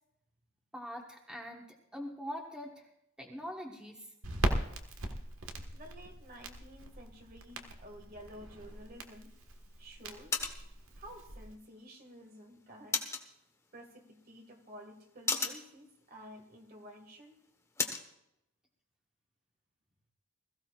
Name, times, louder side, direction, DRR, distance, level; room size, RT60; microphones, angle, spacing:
voice 1, 0.7-1.7 1.9-2.9 3.2-4.1, equal, 5° right, 0 dB, 1.3 m, -43 dB
Crackle, 4.2-11.5, right 1 dB, 75° right, 1.6 m, -39 dB
voice 2, 5.7-9.3 9.8-10.4 11.0-13.0 13.7-17.4, equal, 45° right, 3 dB, 2.0 m, -52 dB
sound 1, 8.7-18.1, left 3 dB, 15° left, 1.2 m, -41 dB
21.0 x 15.0 x 2.5 m, 0.80 s
head